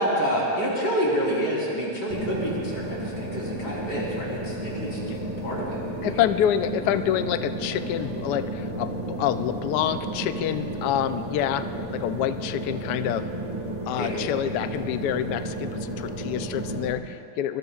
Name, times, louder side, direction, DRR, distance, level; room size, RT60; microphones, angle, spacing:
voice 1, 0.0-5.0 5.4-6.2 14.0-14.2, equal, 50° left, -5 dB, 4.8 m, -28 dB
sound 1, 2.1-16.9, right 1 dB, 20° right, 1.2 m, -32 dB
voice 2, 6.0-11.6 11.9-13.3 13.9-17.6, left 10 dB, 80° left, 10 dB, 0.9 m, -27 dB
25.0 x 22.0 x 2.4 m, 2.4 s
omnidirectional pair, 2.4 m